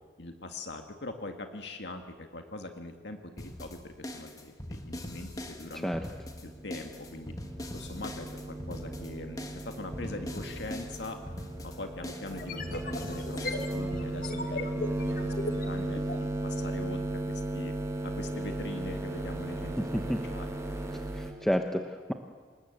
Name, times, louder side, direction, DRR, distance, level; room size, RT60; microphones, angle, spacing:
voice 1, 0.2-5.9 6.4-7.3 7.7-11.2 11.6-16.0 16.4-17.7 18.0-20.6, left 2 dB, 70° left, 5 dB, 1.9 m, -42 dB
sound 1, 3.4-14.1, left 1 dB, 20° left, 1.6 m, -42 dB
sound 2, 6.3-21.3, right 1 dB, 15° right, 2.2 m, -36 dB
sound 3, 12.3-16.3, left 2 dB, 50° left, 2.0 m, -38 dB
voice 2, 21.1-22.1, equal, ahead, 4 dB, 1.0 m, -30 dB
27.0 x 20.0 x 8.1 m, 1.5 s
head